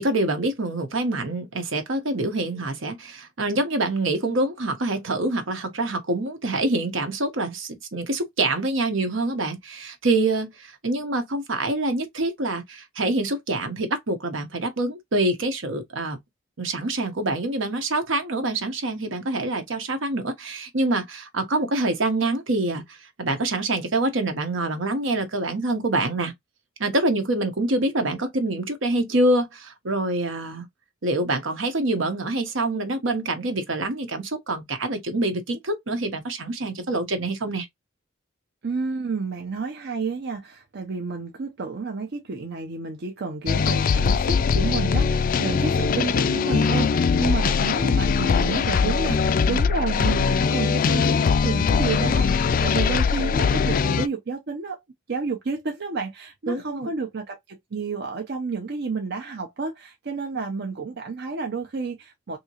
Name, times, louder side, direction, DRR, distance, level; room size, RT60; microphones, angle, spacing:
voice 1, 0.0-16.2 16.6-26.3 26.8-30.6 31.0-37.7 56.5-56.9, right 2 dB, 80° right, 1.0 m, -26 dB
voice 2, 38.6-54.8 55.1-62.4, right 4 dB, 60° right, 0.6 m, -30 dB
sound 1, 43.5-54.1, left 5 dB, 45° left, 0.3 m, -21 dB
3.6 x 2.8 x 2.8 m
head